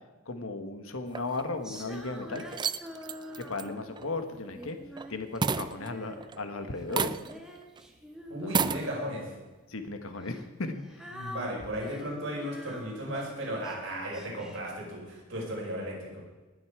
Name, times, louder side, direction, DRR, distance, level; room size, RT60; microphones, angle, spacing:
voice 1, 0.3-2.4 3.4-4.8 5.1-7.2 8.4-8.6 9.7-10.8, left 3 dB, 70° left, 7 dB, 1.4 m, -36 dB
sound 1, 1.1-1.8 2.3-5.1 5.4-6.5 6.9-7.5 7.8-7.9 8.4-8.8, right 5 dB, 20° right, 0.3 m, -32 dB
Female singing, 1.6-4.0 4.5-6.3 6.5-9.4 10.1-14.7, equal, 5° right, 1.4 m, -46 dB
voice 2, 8.3-9.2 11.1-16.1, equal, 60° right, -3 dB, 5.3 m, -35 dB
19.5 x 8.1 x 4.9 m, 1.2 s
head